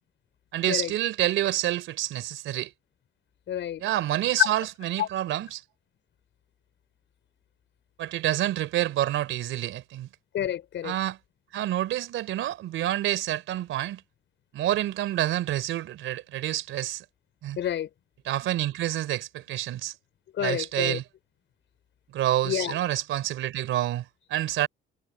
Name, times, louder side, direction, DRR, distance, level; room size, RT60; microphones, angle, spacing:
voice 1, 0.5-2.7 3.8-5.6 8.0-10.1 10.8-11.2 11.5-14.0 14.5-17.0 17.4-17.6 18.3-19.9 20.4-21.0 22.1-24.7, right 13 dB, 85° right, 3.7 m, -28 dB
voice 2, 3.5-3.8 4.4-4.5 5.0-5.1 10.3-10.9 17.6-17.9 20.3-21.0 22.4-22.7, left 10 dB, 70° left, 5.7 m, -28 dB
cardioid pair, 90°, 20 cm